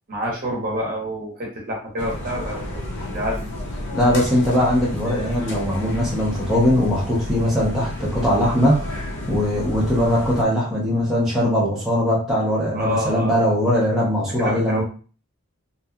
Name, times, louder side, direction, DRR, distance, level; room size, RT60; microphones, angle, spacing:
voice 1, 0.1-2.8 3.0-3.5 12.7-13.4 14.4-14.8, equal, 40° right, -2 dB, 0.8 m, -27 dB
sound 1, 2.0-10.4, left 1 dB, 55° left, 0.6 m, -31 dB
voice 2, 3.9-8.9 9.3-14.8, equal, ahead, -7 dB, 0.6 m, -20 dB
2.7 x 2.3 x 2.3 m, 0.39 s
head